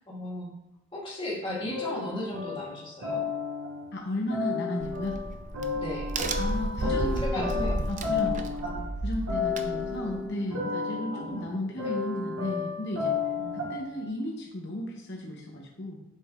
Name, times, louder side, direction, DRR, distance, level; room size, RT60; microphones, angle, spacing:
voice 1, 0.1-0.5 0.9-3.3 5.7-6.2 6.8-7.8 8.6-8.8 9.7-10.1 11.1-11.9 13.4-13.5, left 1 dB, 25° left, -5 dB, 1.8 m, -36 dB
sound 1, 1.7-3.9 4.3-14.0, left 5 dB, 75° right, 1.5 m, -32 dB
voice 2, 3.9-5.2 6.4-8.4 9.0-13.1 13.5-16.0, left 1 dB, 55° left, -1 dB, 0.8 m, -34 dB
Crack, 4.8-10.3, right 1 dB, 35° right, 0.5 m, -33 dB
8.1 x 5.3 x 2.4 m, 0.88 s
head